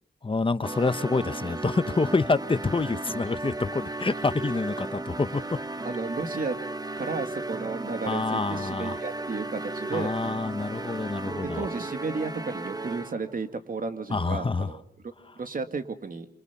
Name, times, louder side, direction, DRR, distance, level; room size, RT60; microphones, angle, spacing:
voice 1, 0.2-5.4 8.1-8.9 9.9-11.7 14.1-14.7, left 3 dB, 30° left, 1.0 m, -27 dB
sound 1, 0.6-13.3, right 2 dB, 25° right, 1.0 m, -35 dB
voice 2, 5.8-6.6 7.0-10.1 11.4-16.3, right 4 dB, 60° right, 2.1 m, -33 dB
26.0 x 26.0 x 7.0 m
wide cardioid pair, 110°, 17 cm